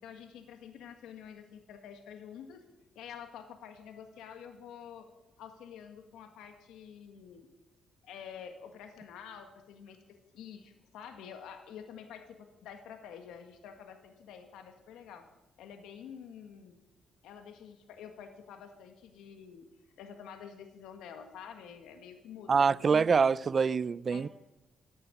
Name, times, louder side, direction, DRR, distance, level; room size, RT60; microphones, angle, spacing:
voice 1, 0.0-2.6 2.9-5.1 5.4-7.5 8.0-15.2 15.6-16.7 17.2-19.7 20.0-22.9 24.1-24.3, left 8 dB, 85° left, 1.6 m, -48 dB
voice 2, 22.5-24.3, right 5 dB, 40° right, 0.4 m, -25 dB
15.0 x 9.2 x 9.5 m
cardioid pair, 90°, 0 cm